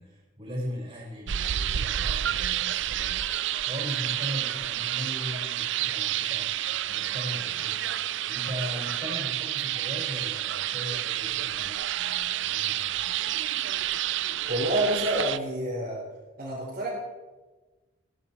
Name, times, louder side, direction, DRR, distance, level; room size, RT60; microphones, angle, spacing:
voice 1, 0.0-13.3, equal, 25° right, -3 dB, 5.0 m, -39 dB
sound 1, 1.3-15.4, right 12 dB, 65° right, 0.4 m, -29 dB
voice 2, 14.5-16.0 16.4-16.9, right 1 dB, 45° right, -6 dB, 3.7 m, -28 dB
16.0 x 13.5 x 4.4 m, 1.2 s
head